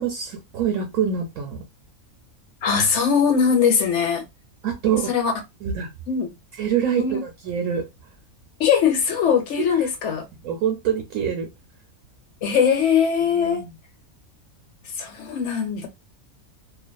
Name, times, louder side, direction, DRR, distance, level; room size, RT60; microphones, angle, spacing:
voice 1, 0.0-1.6 4.6-5.1 5.6-5.9 6.5-7.9 9.6-9.9 10.3-11.5 13.2-13.7, right 8 dB, 70° right, 1.0 m, -25 dB
voice 2, 2.6-4.2 5.1-5.3 6.1-6.3 7.0-7.2 8.6-10.3 12.4-13.6 14.8-15.9, left 7 dB, 65° left, 0.8 m, -21 dB
2.4 x 2.4 x 2.2 m
omnidirectional pair, 1.5 m